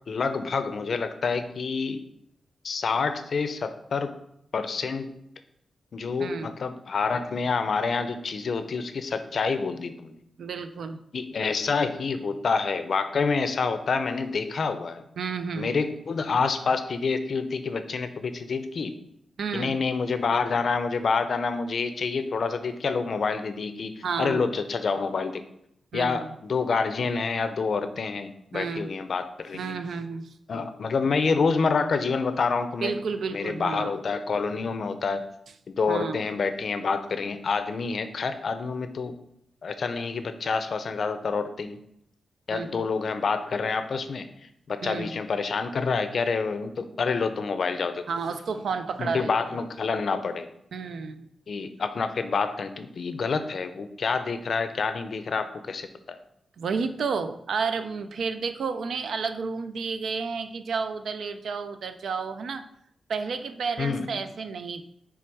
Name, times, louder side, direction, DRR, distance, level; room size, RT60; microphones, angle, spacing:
voice 1, 0.1-2.1 2.6-4.2 4.5-5.1 5.9-10.2 11.1-15.0 15.6-18.9 19.5-25.4 25.9-29.8 30.5-32.9 33.3-35.2 35.7-39.2 39.6-41.8 42.5-44.3 44.7-48.0 49.0-50.5 51.5-56.2 63.8-64.1, left 4 dB, 60° left, 10 dB, 0.5 m, -27 dB
voice 2, 6.2-6.6 10.4-11.0 15.2-15.8 19.4-19.7 24.0-24.5 25.9-26.3 28.5-28.9 29.5-30.3 32.8-33.9 35.9-36.2 42.5-42.8 44.8-45.1 48.1-49.3 50.7-51.3 56.6-62.6 63.1-64.8, right 5 dB, 75° right, 9 dB, 0.5 m, -31 dB
6.1 x 3.4 x 4.6 m, 0.74 s
wide cardioid pair, 120°, 0 cm